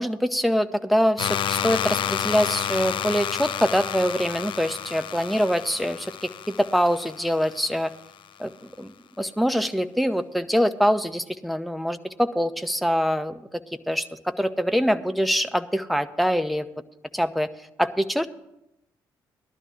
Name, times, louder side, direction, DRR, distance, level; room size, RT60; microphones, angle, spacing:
voice 1, 0.0-7.9 8.4-8.5 8.8-13.6 13.9-16.7 17.1-17.5 17.8-18.3, equal, ahead, 10 dB, 0.7 m, -24 dB
sound 1, 1.2-8.0, left 9 dB, 50° left, 0.4 m, -30 dB
18.0 x 12.0 x 2.9 m, 0.87 s
figure-of-eight pair, 40°, 11 cm